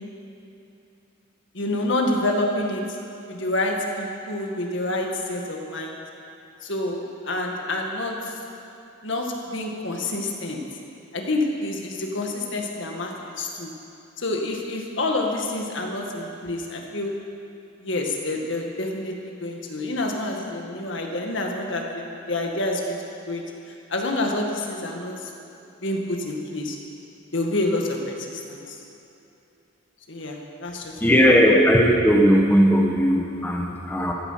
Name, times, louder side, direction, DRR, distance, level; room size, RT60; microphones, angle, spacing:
voice 1, 1.5-2.8 3.3-6.0 6.6-8.3 9.0-10.6 11.1-13.7 14.2-17.1 17.8-23.0 23.3-23.4 23.7-25.3 25.8-26.8 27.3-28.8 30.1-31.1 31.4-31.5, left 2 dB, 60° left, 1 dB, 1.9 m, -28 dB
voice 2, 31.0-34.1, equal, 10° left, -1 dB, 1.1 m, -17 dB
16.0 x 12.5 x 5.8 m, 2.7 s
head